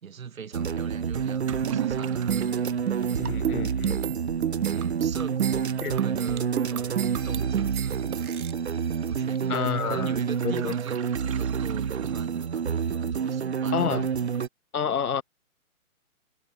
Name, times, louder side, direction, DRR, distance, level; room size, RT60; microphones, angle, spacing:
voice 1, 0.0-3.5 4.7-8.3 9.1-11.0 11.3-14.3, right 7 dB, 65° right, 1.4 m, -41 dB
sound 1, 0.5-14.5, right 7 dB, 50° right, 0.7 m, -28 dB
Toilet flush / Liquid, 1.1-12.8, right 13 dB, 20° right, 2.6 m, -41 dB
sound 2, 2.3-8.5, right 9 dB, 85° right, 0.7 m, -31 dB
voice 2, 3.2-4.1 5.8-5.9 9.5-10.1 10.4-10.7 13.7-14.1 14.7-15.2, left 7 dB, 80° left, 1.3 m, -28 dB
hypercardioid pair, 175°, 43 cm